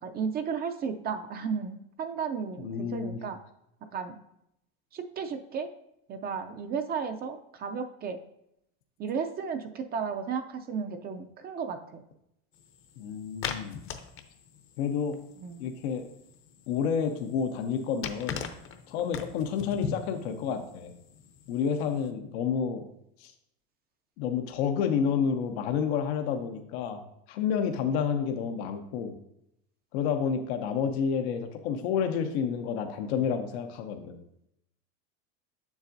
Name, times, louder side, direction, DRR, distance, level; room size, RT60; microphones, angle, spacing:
voice 1, 0.0-3.4 3.9-4.2 4.9-5.7 6.1-8.2 9.0-12.0 15.4-15.6, right 6 dB, 30° right, 7 dB, 0.4 m, -34 dB
voice 2, 2.6-3.2 13.0-13.8 14.8-15.2 15.6-16.1 16.7-18.4 18.9-20.9 21.5-22.8 23.2-23.3 24.2-27.0 27.3-29.1 29.9-34.2, left 7 dB, 85° left, 6 dB, 0.7 m, -29 dB
sound 1, 12.5-22.1, left 7 dB, 40° left, 0.6 m, -42 dB
7.1 x 6.9 x 2.6 m, 0.80 s
supercardioid pair, 125°, 31 cm